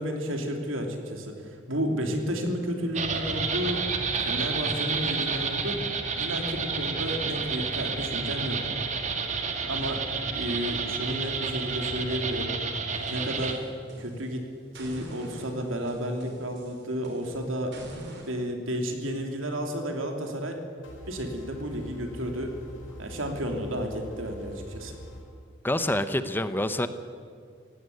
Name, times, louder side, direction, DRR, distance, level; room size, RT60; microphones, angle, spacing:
voice 1, 0.0-3.8 4.2-5.8 6.2-8.6 9.7-10.0 10.3-12.5 13.1-13.6 14.0-14.5 14.7-20.6 21.1-22.5 23.0-25.0, equal, 85° right, 4 dB, 3.1 m, -32 dB
sound 1, 2.9-13.6, right 5 dB, 35° right, 1.8 m, -30 dB
sound 2, 12.9-14.3 14.7-18.3, right 1 dB, 60° right, 4.0 m, -45 dB
sound 3, 20.8-25.2, equal, 70° left, 4.6 m, -44 dB
voice 2, 25.6-26.9, left 1 dB, 10° left, 11 dB, 0.7 m, -26 dB
17.0 x 16.0 x 9.6 m, 2.1 s
head